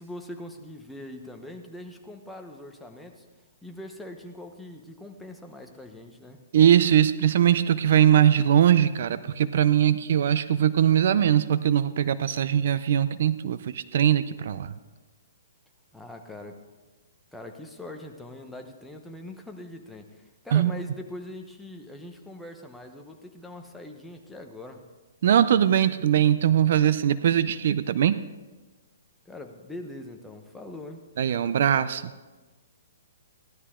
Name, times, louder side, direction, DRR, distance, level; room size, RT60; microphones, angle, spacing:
voice 1, 0.0-3.3 3.6-6.4 15.9-16.6 17.3-24.8 29.2-31.0, left 1 dB, 5° left, 3 dB, 1.0 m, -42 dB
voice 2, 6.5-14.7 20.5-20.7 25.2-28.2 31.2-32.0, right 10 dB, 60° right, 14 dB, 0.5 m, -21 dB
15.5 x 12.5 x 3.7 m, 1.2 s
hypercardioid pair, 155°, 0 cm